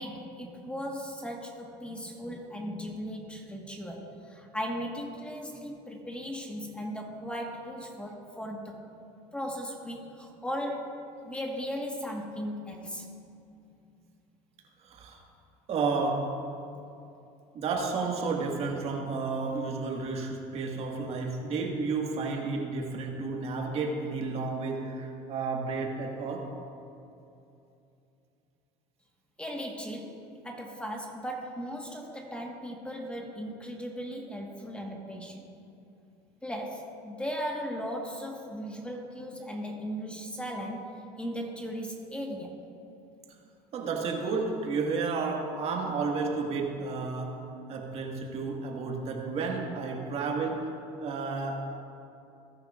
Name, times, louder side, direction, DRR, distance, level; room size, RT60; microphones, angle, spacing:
voice 1, 0.0-8.8 9.3-13.1 29.4-35.4 36.4-42.6, equal, 10° left, 0 dB, 1.5 m, -37 dB
voice 2, 14.8-15.2 15.7-16.4 17.5-26.5 43.7-50.7 51.0-51.7, right 4 dB, 45° right, 0 dB, 1.8 m, -32 dB
19.5 x 10.5 x 2.5 m, 2.7 s
supercardioid pair, 110°, 14 cm